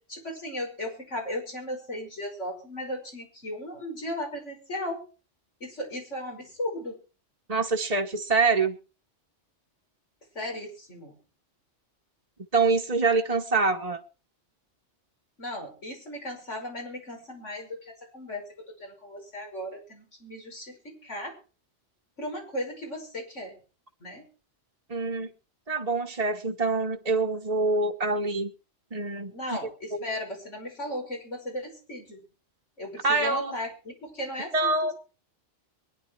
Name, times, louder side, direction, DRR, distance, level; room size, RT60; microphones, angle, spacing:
voice 1, 0.1-5.0 5.6-7.0 10.3-11.2 15.4-21.4 22.2-23.6 24.0-24.3 29.3-32.2 32.8-34.7, left 1 dB, 75° left, 2 dB, 5.8 m, -36 dB
voice 2, 7.5-8.8 12.5-14.0 24.9-25.3 25.7-28.5 28.9-29.6 29.9-30.0 33.0-33.5 34.5-34.9, right 3 dB, 30° right, 1 dB, 1.2 m, -25 dB
23.0 x 10.5 x 4.6 m, 0.36 s
omnidirectional pair, 1.2 m